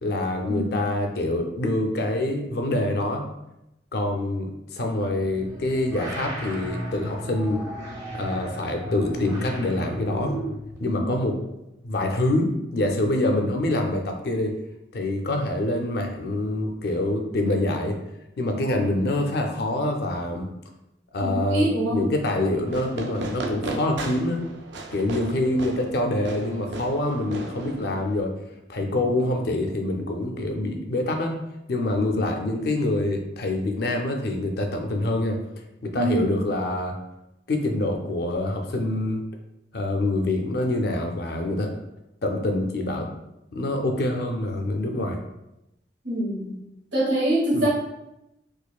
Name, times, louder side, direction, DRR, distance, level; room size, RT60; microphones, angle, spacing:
voice 1, 0.0-3.2 3.9-7.6 8.1-10.3 10.8-11.4 11.8-14.6 14.9-18.0 18.4-20.5 21.1-24.4 24.9-28.3 28.7-31.3 31.7-35.4 35.8-36.9 37.5-39.2 39.7-41.8 42.2-43.1 43.5-45.2 47.5-47.7, left 1 dB, 55° left, 3 dB, 0.5 m, -25 dB
sound 1, 5.3-10.8, right 1 dB, 20° right, 0.6 m, -34 dB
voice 2, 21.2-22.0 32.1-32.2 35.9-36.3 46.0-46.5 46.9-47.7, right 1 dB, 90° right, -5 dB, 1.3 m, -25 dB
Fireworks, 22.7-28.2, right 2 dB, 75° right, 0.4 m, -35 dB
4.2 x 2.5 x 2.3 m, 0.89 s
head